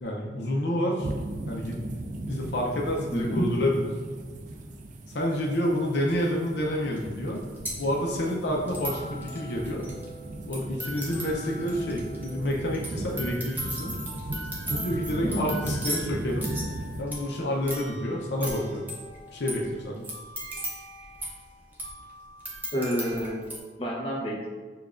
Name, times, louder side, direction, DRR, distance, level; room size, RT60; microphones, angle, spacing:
voice 1, 0.0-1.1 1.5-1.8 2.3-3.9 5.1-7.4 7.8-9.8 10.5-14.0 14.7-16.5 17.0-18.8 19.3-20.1, left 1 dB, 70° left, -1 dB, 0.6 m, -28 dB
sound 1, 1.0-17.0, right 1 dB, 45° right, 0.4 m, -37 dB
voice 2, 3.1-3.5 15.2-15.6 22.7-23.4 23.8-24.5, equal, 30° left, -4 dB, 0.8 m, -29 dB
sound 2, 6.1-6.2 7.0-7.1 7.2-23.6, right 1 dB, 10° right, 0.7 m, -38 dB
6.7 x 2.3 x 2.5 m, 1.4 s
head